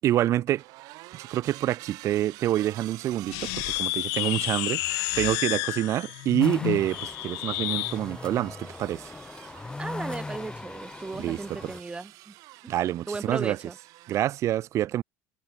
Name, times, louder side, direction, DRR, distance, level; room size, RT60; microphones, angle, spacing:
voice 1, 0.0-0.6 1.1-4.8 5.2-9.0 11.2-11.4 12.7-13.6 14.1-15.0, right 13 dB, 50° right, 0.8 m, -27 dB
sound 1, 0.6-14.2, right 22 dB, 70° right, 5.3 m, -48 dB
sound 2, 3.3-8.0, left 30 dB, 75° left, 0.6 m, -30 dB
sound 3, 6.4-11.8, left 3 dB, 15° left, 6.5 m, -39 dB
voice 2, 9.8-12.3 12.6-12.7 13.1-13.8, right 3 dB, 15° right, 7.3 m, -36 dB
supercardioid pair, 105°, 6 cm